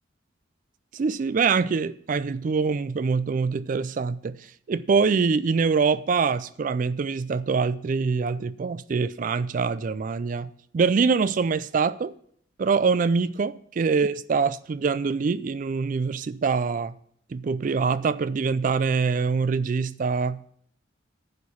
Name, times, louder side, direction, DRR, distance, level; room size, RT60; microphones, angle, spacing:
voice 1, 0.9-12.1 12.6-16.9 17.3-20.4, right 5 dB, 45° right, 0.3 m, -24 dB
11.0 x 4.7 x 8.3 m
head